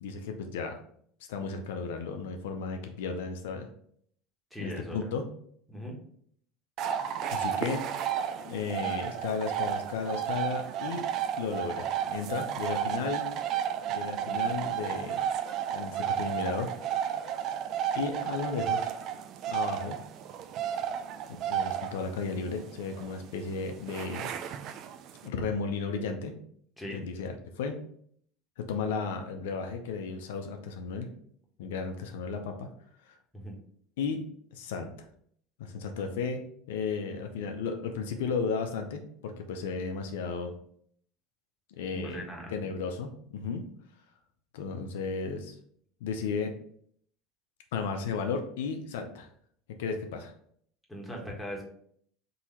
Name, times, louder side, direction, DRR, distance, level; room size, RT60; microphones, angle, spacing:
voice 1, 0.0-0.8 1.3-3.7 4.6-5.2 7.3-7.8 8.4-11.1 11.4-13.2 13.9-15.2 15.7-17.3 17.9-18.9 19.5-20.0 21.5-24.3 25.2-26.3 26.9-27.8 28.6-31.1 31.6-32.7 33.1-33.2 34.0-34.9 35.6-36.4 36.7-40.5 41.7-42.3 42.5-43.6 44.5-45.6 46.0-46.5 47.7-49.3 49.8-50.3, left 5 dB, 90° left, 5 dB, 0.6 m, -34 dB
voice 2, 4.5-5.0 5.7-6.0 26.8-27.0 33.3-33.5 41.9-42.7 50.9-51.6, equal, 5° left, -2 dB, 1.4 m, -39 dB
sound 1, 6.8-25.3, right 9 dB, 50° right, 0.4 m, -33 dB
4.0 x 2.8 x 4.4 m, 0.63 s
supercardioid pair, 115°, 0 cm